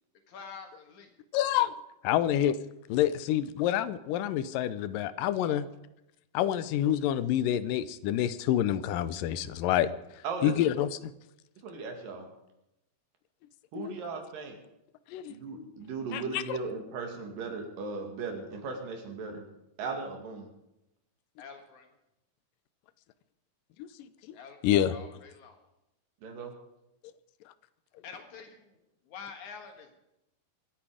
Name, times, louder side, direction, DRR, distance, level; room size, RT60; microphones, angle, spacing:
voice 1, 0.3-1.1 21.4-21.9 24.3-25.6 28.0-28.8 29.0-30.1, left 6 dB, 65° left, 4 dB, 3.0 m, -47 dB
voice 2, 1.3-1.7 2.0-2.6 2.9-5.6 6.3-9.9 10.4-11.1 13.8-13.9 15.1-15.3 16.1-16.6 23.8-23.9 24.3-24.4 24.6-24.9, left 11 dB, 90° left, 15 dB, 2.4 m, -27 dB
voice 3, 11.6-12.3 13.7-14.6 15.3-19.5 19.8-20.5 26.2-26.5, right 4 dB, 85° right, 3 dB, 4.0 m, -37 dB
24.5 x 8.6 x 5.0 m, 0.89 s
omnidirectional pair, 3.8 m